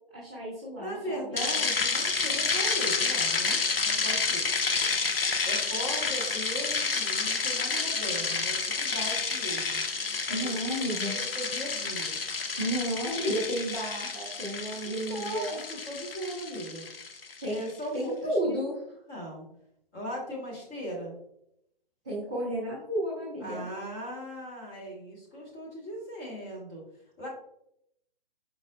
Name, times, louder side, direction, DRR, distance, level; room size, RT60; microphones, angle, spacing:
voice 1, 0.1-1.4 10.3-11.2 12.6-15.6 17.4-17.6 17.9-19.0 22.0-23.6, equal, 5° right, -11 dB, 0.3 m, -32 dB
voice 2, 0.8-4.7 5.4-9.8 10.3-10.6 11.1-12.2 14.8-16.8 17.5-18.4 19.1-19.4 19.9-21.1 23.4-26.8 27.2-27.3, equal, 20° left, -3 dB, 1.5 m, -38 dB
sound 1, 1.4-17.6, left 4 dB, 75° left, 0.7 m, -30 dB
5.1 x 4.0 x 2.4 m, 0.77 s
figure-of-eight pair, 130°, 29 cm